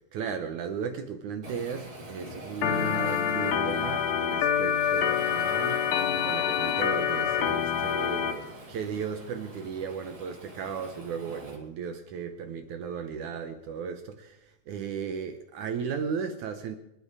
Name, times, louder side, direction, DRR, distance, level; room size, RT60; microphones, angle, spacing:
voice 1, 0.0-16.8, right 6 dB, 75° right, 1.8 m, -35 dB
Waves surf, 1.4-11.6, right 1 dB, 30° right, 3.4 m, -45 dB
Organ, 2.6-8.3, left 8 dB, 80° left, 3.3 m, -26 dB
25.0 x 10.0 x 4.8 m
omnidirectional pair, 4.8 m